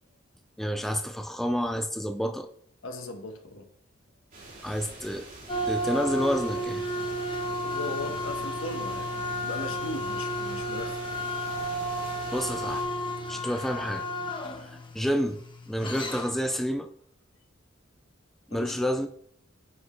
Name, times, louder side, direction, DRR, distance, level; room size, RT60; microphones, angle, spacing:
voice 1, 0.6-2.5 4.6-5.3 5.7-6.8 12.3-12.8 13.3-14.1 14.6-15.4 15.7-16.9 18.5-19.1, equal, ahead, 0.4 m, -29 dB
voice 2, 2.8-3.7 7.6-9.1 9.4-11.0 18.5-18.9, left 1 dB, 75° left, 1.3 m, -37 dB
sound 1, 4.3-12.8, right 2 dB, 45° right, 3.0 m, -46 dB
sound 2, 5.5-16.5, equal, 25° left, 1.0 m, -32 dB
9.4 x 6.2 x 3.2 m
head